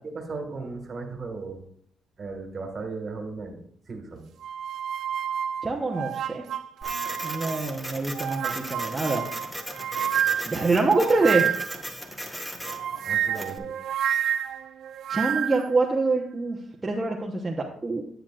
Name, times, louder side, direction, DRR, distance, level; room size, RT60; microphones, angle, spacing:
voice 1, 0.0-1.6 2.2-3.6 3.9-4.3 13.0-13.7, right 3 dB, 45° right, 4 dB, 1.7 m, -36 dB
sound 1, 4.4-7.7 8.1-11.9 12.6-15.7, right 9 dB, 70° right, 0.4 m, -29 dB
voice 2, 5.6-6.4 7.2-9.2 10.4-11.5 15.1-18.0, right 3 dB, 20° right, -1 dB, 0.9 m, -25 dB
Printer, 6.8-13.6, equal, 10° left, 1.2 m, -37 dB
9.6 x 9.0 x 2.5 m, 0.64 s
cardioid pair, 90°, 0 cm